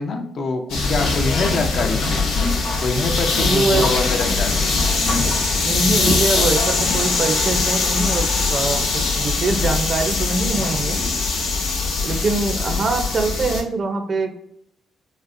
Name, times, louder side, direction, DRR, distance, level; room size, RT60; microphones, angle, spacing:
voice 1, 0.0-2.2 2.8-4.6, left 3 dB, 50° left, 5 dB, 0.5 m, -25 dB
sound 1, 0.7-13.6, left 3 dB, 85° left, 0.8 m, -21 dB
voice 2, 3.4-3.9 5.6-11.0 12.0-14.4, right 3 dB, 45° right, 6 dB, 0.4 m, -23 dB
3.9 x 2.0 x 2.5 m, 0.72 s
cardioid pair, 90°, 0 cm